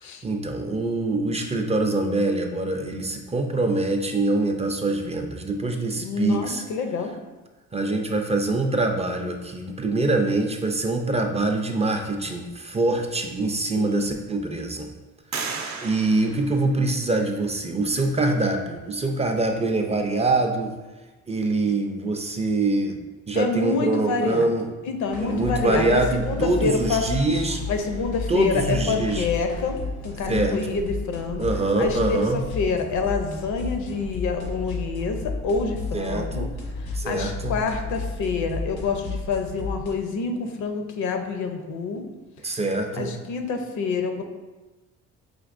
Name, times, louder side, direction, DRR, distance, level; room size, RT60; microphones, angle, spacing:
voice 1, 0.2-6.6 7.7-14.9 15.8-20.7 21.3-23.0 23.3-24.7 25.2-27.6 28.3-29.3 30.3-30.8 31.4-32.4 35.9-36.5 36.9-37.6 42.4-43.1, right 2 dB, 20° right, 3 dB, 0.4 m, -24 dB
voice 2, 6.0-7.1 13.8-14.0 14.4-14.6 23.4-24.5 24.8-27.1 27.7-29.8 30.0-31.4 31.8-32.2 32.6-36.5 37.0-42.0 43.0-44.2, left 4 dB, 70° left, 5 dB, 0.6 m, -27 dB
sound 1, 13.1-13.2 13.7-14.4 15.3-17.3, right 5 dB, 65° right, 0.6 m, -35 dB
sound 2, 25.1-39.9, left 3 dB, 90° left, 1.2 m, -32 dB
5.1 x 2.9 x 2.5 m, 1.2 s
cardioid pair, 90°, 30 cm